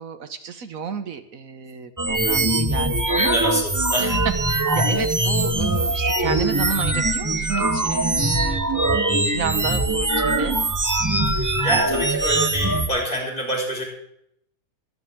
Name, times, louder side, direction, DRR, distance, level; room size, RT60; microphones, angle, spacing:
voice 1, 0.0-3.4 4.5-10.6, right 7 dB, 70° right, 9 dB, 1.4 m, -31 dB
sound 1, 2.0-12.9, right 2 dB, 15° right, 1.1 m, -22 dB
voice 2, 3.2-4.2 11.3-13.8, equal, 35° left, -2 dB, 5.3 m, -27 dB
sound 2, 3.9-7.1, left 1 dB, 90° left, 6.2 m, -47 dB
23.5 x 9.8 x 3.6 m, 0.71 s
omnidirectional pair, 1.5 m